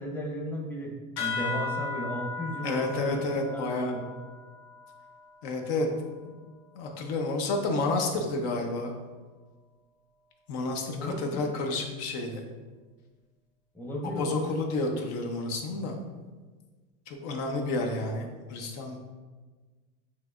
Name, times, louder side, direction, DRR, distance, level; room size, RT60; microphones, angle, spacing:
voice 1, 0.0-4.0 11.0-11.5 13.7-14.5, equal, 5° left, -1 dB, 0.7 m, -35 dB
sound 1, 1.2-6.1, left 4 dB, 80° left, 1.1 m, -37 dB
voice 2, 2.6-3.9 5.4-5.9 6.2-6.4 6.7-8.9 10.5-12.4 14.2-16.0 17.1-19.1, left 2 dB, 65° left, 2 dB, 0.8 m, -30 dB
6.4 x 2.9 x 2.4 m, 1.4 s
supercardioid pair, 95°, 45 cm